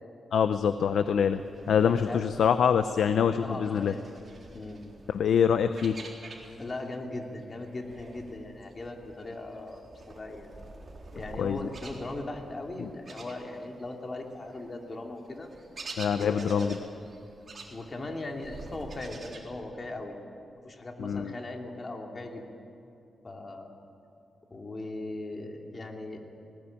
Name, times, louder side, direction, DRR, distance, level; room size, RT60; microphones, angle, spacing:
voice 1, 0.3-1.4 1.7-3.9 5.1-6.0 11.4-11.7 12.8-12.9 16.0-16.8 21.0-21.3, left 7 dB, 85° left, 10 dB, 0.7 m, -25 dB
sound 1, 1.1-6.9 7.1-13.9 14.3-19.4, right 3 dB, 45° right, 4.0 m, -48 dB
voice 2, 1.9-2.5 3.1-4.0 4.5-4.8 6.6-10.5 11.1-15.5 16.1-16.8 17.7-20.2 20.6-22.4 23.2-23.7 24.5-26.2, left 2 dB, 35° left, 2 dB, 2.9 m, -39 dB
20.0 x 19.0 x 8.8 m, 2.7 s
cardioid pair, 100°, 0 cm